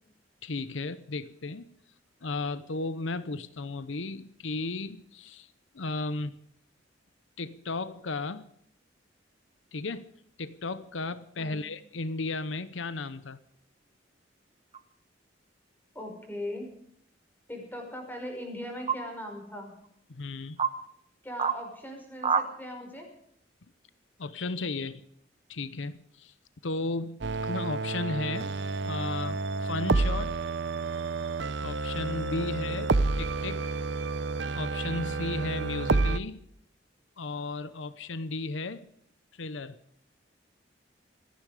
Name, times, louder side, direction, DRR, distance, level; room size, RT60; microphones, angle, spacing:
voice 1, 0.4-1.7 2.2-5.5 5.7-6.4 7.4-8.5 9.7-10.1 10.4-13.4 20.1-20.6 24.2-25.0 25.5-26.3 26.6-28.5 28.9-30.4 31.6-32.9 33.2-33.7 34.5-36.4 37.2-38.9 39.3-39.8, left 3 dB, 85° left, 14 dB, 0.8 m, -34 dB
Toads Sh, 14.7-14.8 16.3-16.8 18.9-19.0 19.8-19.9 20.6-20.7 21.4-21.6 22.2-22.5, right 6 dB, 30° right, 1.2 m, -28 dB
voice 2, 15.9-16.7 17.5-19.7 21.2-23.1 32.6-32.8, left 1 dB, 10° left, 2 dB, 5.3 m, -39 dB
sound 1, 27.2-36.2, right 3 dB, 65° right, 0.7 m, -29 dB
27.0 x 10.5 x 4.9 m, 0.71 s
head